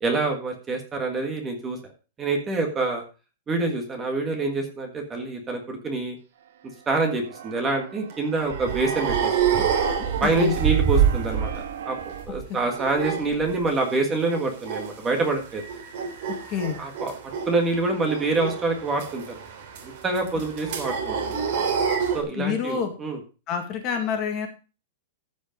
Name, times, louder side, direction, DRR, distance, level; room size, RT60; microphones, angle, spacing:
voice 1, 0.0-1.8 2.2-3.0 3.5-6.2 6.9-9.6 10.2-11.5 11.8-12.0 12.2-15.6 16.8-17.1 17.5-19.4 19.8-21.4 22.1-23.2, right 3 dB, 15° right, 3 dB, 1.6 m, -26 dB
Keyboard (musical), 6.4-12.2, right 9 dB, 65° right, 1.7 m, -39 dB
sound 1, 8.1-11.7 12.0-14.0 14.3-14.9 15.3-22.2, right 7 dB, 45° right, 3.2 m, -27 dB
voice 2, 10.0-10.6 16.5-16.8 22.3-22.9 23.5-24.5, left 7 dB, 25° left, 5 dB, 1.9 m, -27 dB
14.5 x 5.3 x 5.1 m, 0.33 s
supercardioid pair, 170°, 0 cm